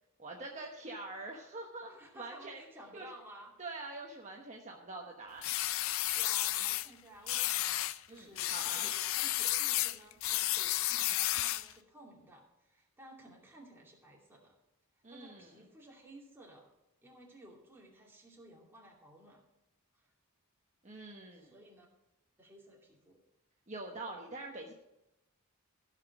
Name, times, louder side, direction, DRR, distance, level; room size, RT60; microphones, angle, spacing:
voice 1, 0.2-2.6 2.9-3.1 3.6-5.5 8.1-8.9 15.0-15.5 20.8-21.5 23.7-24.7, right 2 dB, 35° right, 0 dB, 1.1 m, -45 dB
voice 2, 1.9-3.5 5.6-14.6 15.1-16.7 17.0-19.4 19.9-20.1 21.3-21.9 22.4-23.2, right 1 dB, 10° right, -3 dB, 2.6 m, -55 dB
sound 1, 5.4-6.9 7.3-8.0 8.4-11.7, left 15 dB, 60° left, 0.4 m, -32 dB
15.0 x 6.0 x 6.0 m, 0.90 s
head